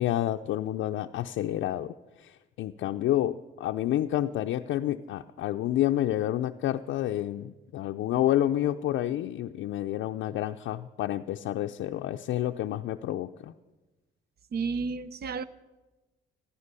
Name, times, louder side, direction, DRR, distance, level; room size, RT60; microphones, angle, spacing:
voice 1, 0.0-13.5, left 13 dB, 75° left, 0.5 m, -29 dB
voice 2, 14.5-15.4, right 5 dB, 55° right, 0.8 m, -31 dB
14.5 x 13.0 x 6.8 m
cardioid pair, 90°, 20 cm